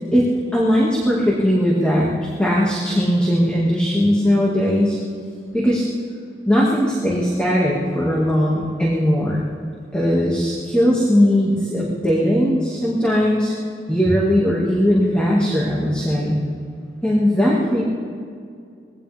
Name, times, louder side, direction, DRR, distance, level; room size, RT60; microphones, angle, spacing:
voice 1, 0.5-2.1 2.4-5.0 5.5-5.9 6.5-9.4 9.9-13.5 13.9-16.4 17.0-17.8, equal, 5° left, -5 dB, 2.0 m, -18 dB
21.5 x 17.0 x 3.5 m, 2.3 s
head